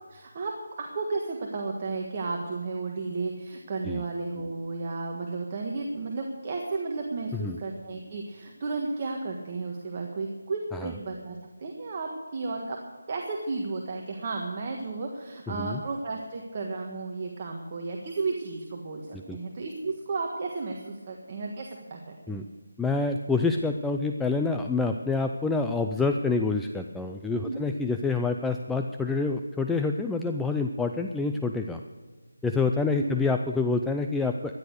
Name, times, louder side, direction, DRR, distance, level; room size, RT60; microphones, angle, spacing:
voice 1, 0.1-0.5 0.8-12.8 13.1-22.4 27.3-27.7 32.8-33.1, right 3 dB, 30° right, 1 dB, 1.5 m, -33 dB
voice 2, 15.5-15.8 19.3-19.4 22.3-22.4 22.8-31.8 32.4-34.5, left 3 dB, 5° left, 4 dB, 0.4 m, -27 dB
14.0 x 10.5 x 6.6 m, 1.4 s
figure-of-eight pair, 165°, 0 cm